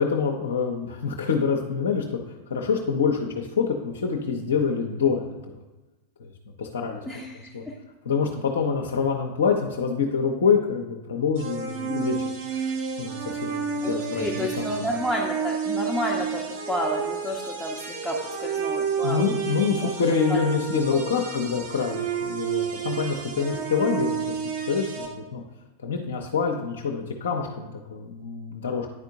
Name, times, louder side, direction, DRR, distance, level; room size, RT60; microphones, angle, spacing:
voice 1, 0.0-2.1 2.5-5.4 6.2-6.3 6.6-7.0 7.5-7.6 8.1-12.2 12.5-12.7 13.0-14.7 19.0-24.4 24.7-25.4 25.8-28.9, left 5 dB, 65° left, 0 dB, 0.6 m, -26 dB
voice 2, 7.1-7.7 13.8-19.2 19.8-20.4 20.9-21.1, equal, ahead, -3 dB, 0.8 m, -31 dB
sound 1, 11.3-25.1, right 6 dB, 50° right, 1.5 m, -30 dB
9.6 x 4.4 x 2.6 m, 1.1 s
figure-of-eight pair, 90°, 0 cm